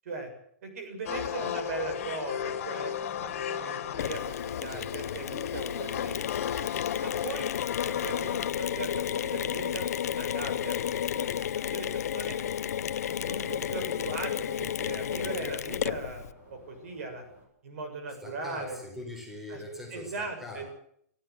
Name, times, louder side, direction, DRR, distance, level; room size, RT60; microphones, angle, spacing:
voice 1, 0.6-6.2 7.0-7.5 7.8-11.3 11.7-12.4 13.1-17.2 17.6-18.8 19.5-19.6 19.9-20.7, right 3 dB, 60° right, 6 dB, 7.4 m, -39 dB
sound 1, 1.0-8.5, left 9 dB, 55° left, 2.9 m, -35 dB
Mechanisms, 4.0-16.3, left 10 dB, 70° left, 0.8 m, -32 dB
sound 2, 9.0-17.4, left 2 dB, 20° right, 7.6 m, -50 dB
voice 2, 18.2-20.6, left 2 dB, 5° right, 1 dB, 4.3 m, -42 dB
25.5 x 14.0 x 8.1 m, 0.69 s
hypercardioid pair, 170°, 9 cm